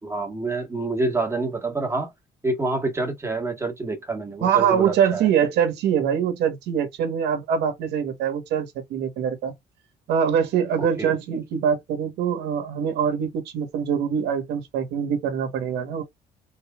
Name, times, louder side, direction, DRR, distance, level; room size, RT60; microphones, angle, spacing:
voice 1, 0.0-2.1 2.4-5.3 10.8-11.1, right 2 dB, 15° right, 1.6 m, -27 dB
voice 2, 4.4-9.5 10.1-16.0, right 8 dB, 80° right, 1.4 m, -23 dB
3.8 x 3.0 x 2.4 m
cardioid pair, 110°, 17 cm